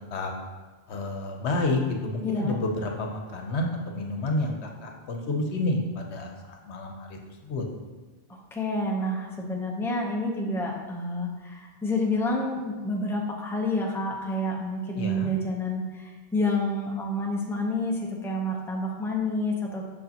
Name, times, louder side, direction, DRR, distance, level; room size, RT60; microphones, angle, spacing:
voice 1, 0.9-4.5 4.8-7.6 15.0-15.3, left 2 dB, 80° left, 2 dB, 1.1 m, -30 dB
voice 2, 2.2-2.6 8.3-19.9, left 1 dB, 5° left, -1 dB, 0.7 m, -29 dB
6.5 x 6.3 x 2.9 m, 1.3 s
omnidirectional pair, 1.1 m